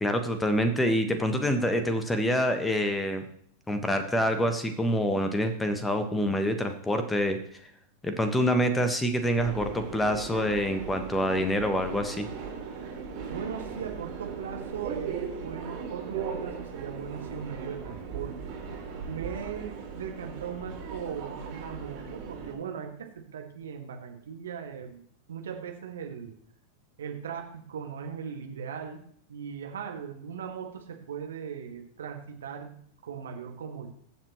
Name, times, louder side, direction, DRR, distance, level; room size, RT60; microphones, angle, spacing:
voice 1, 0.0-3.2 3.7-7.7 8.0-12.3, equal, 10° left, 7 dB, 1.4 m, -26 dB
Subway metro underground, 9.4-22.5, right 5 dB, 40° right, 4.6 m, -38 dB
voice 2, 13.3-18.6 19.1-25.0 25.3-26.3 27.0-33.9, right 7 dB, 65° right, 3 dB, 1.9 m, -39 dB
21.0 x 7.4 x 3.1 m, 0.64 s
figure-of-eight pair, 90°, 0 cm